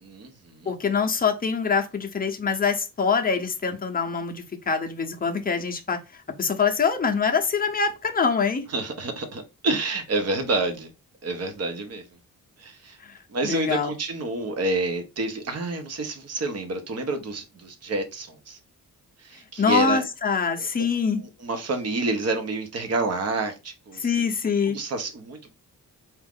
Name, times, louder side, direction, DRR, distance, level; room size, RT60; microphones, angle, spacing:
voice 1, 0.0-0.7 8.7-10.9 11.2-12.0 12.6-13.0 13.3-18.6 19.2-20.0 20.6-20.8 21.4-24.2 24.7-25.5, right 2 dB, 45° right, 0.9 m, -28 dB
voice 2, 0.7-8.6 13.0-13.2 13.4-13.9 19.6-21.2 24.0-24.8, left 5 dB, 25° left, 0.6 m, -24 dB
4.4 x 2.5 x 3.5 m
wide cardioid pair, 165°, 34 cm